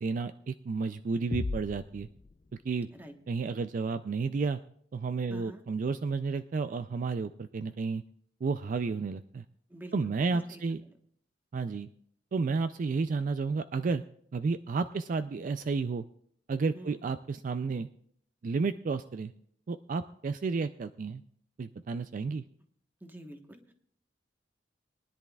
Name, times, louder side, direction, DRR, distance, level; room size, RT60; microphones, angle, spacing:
voice 1, 0.0-2.1 2.6-2.9 3.3-4.6 4.9-8.0 8.4-9.4 9.9-10.8 11.5-11.9 12.3-14.0 14.3-16.0 16.5-17.9 18.4-19.3 19.7-21.2 21.6-22.4, right 4 dB, 45° right, 11 dB, 0.3 m, -31 dB
sound 1, 1.3-3.0, left 3 dB, 35° left, 0.4 m, -38 dB
voice 2, 5.3-5.6 9.7-10.1 10.5-10.6 16.7-17.0 23.0-23.7, right 1 dB, 10° right, 5 dB, 1.2 m, -47 dB
22.5 x 10.5 x 2.3 m, 0.65 s
head